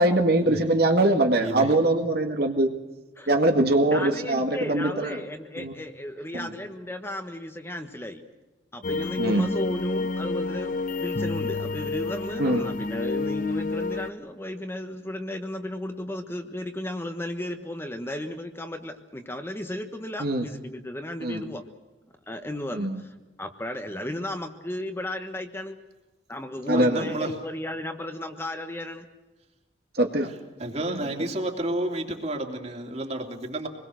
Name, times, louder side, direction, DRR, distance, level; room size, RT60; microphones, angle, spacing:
voice 1, 0.0-2.7 3.3-5.2 5.6-5.7 6.3-6.5 9.2-9.5 12.4-12.6 20.2-20.4 21.2-21.4 22.7-23.0 26.7-27.1 29.9-30.3 30.9-31.3, right 1 dB, 60° right, 4 dB, 1.9 m, -23 dB
voice 2, 3.9-8.2 8.7-21.6 22.3-25.8 26.3-29.1, left 1 dB, 15° left, 5 dB, 1.3 m, -35 dB
sound 1, 8.8-14.1, left 3 dB, 45° left, 0.8 m, -29 dB
voice 3, 26.7-27.3 30.6-33.7, right 1 dB, 35° right, 2 dB, 3.0 m, -30 dB
25.5 x 21.0 x 6.4 m, 1.2 s
head